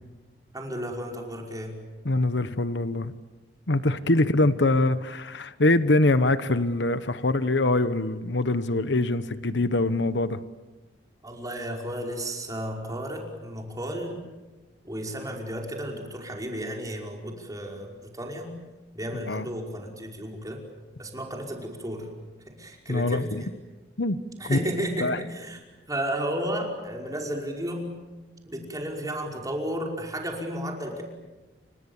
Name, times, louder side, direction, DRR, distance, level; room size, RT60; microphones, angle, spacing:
voice 1, 0.5-1.8 11.2-14.2 14.8-18.5 19.0-20.6 21.0-22.1 22.5-23.5 24.4-25.6 25.9-28.0 28.5-31.0, equal, 20° right, 0 dB, 5.4 m, -33 dB
voice 2, 2.0-3.1 3.7-10.4 19.3-19.5 22.9-23.4 24.0-24.2 24.5-24.6 25.0-25.2, left 2 dB, 75° left, 13 dB, 1.1 m, -23 dB
30.0 x 26.0 x 7.3 m, 1.2 s
head